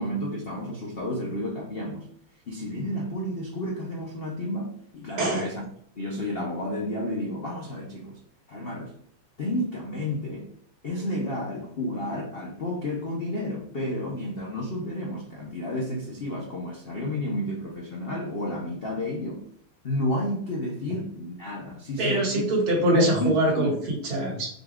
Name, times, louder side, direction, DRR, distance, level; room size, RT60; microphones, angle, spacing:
voice 1, 0.0-2.1 2.5-5.6 6.0-8.2 8.5-8.9 9.4-10.5 10.8-19.4 19.8-22.4 22.8-23.7, left 1 dB, 70° left, -2 dB, 0.5 m, -31 dB
voice 2, 5.2-5.5 22.0-24.5, right 1 dB, 85° right, -3 dB, 2.6 m, -23 dB
5.8 x 2.4 x 3.5 m, 0.64 s
omnidirectional pair, 2.2 m